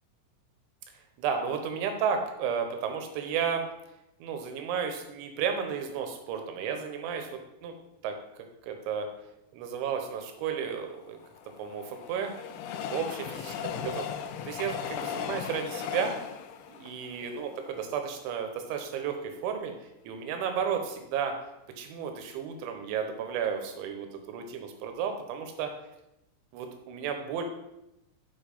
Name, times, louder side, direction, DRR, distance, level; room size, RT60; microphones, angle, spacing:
voice 1, 1.2-3.7 4.2-7.7 8.0-9.1 9.5-11.2 11.6-12.3 12.9-16.2 16.7-19.7 20.0-21.3 21.8-25.7 26.5-27.4, right 7 dB, 80° right, 5 dB, 3.0 m, -33 dB
Train, 10.9-18.2 18.7-18.8 19.0-19.1, left 8 dB, 80° left, 2.8 m, -37 dB
9.2 x 4.5 x 5.3 m, 0.87 s
omnidirectional pair, 6.0 m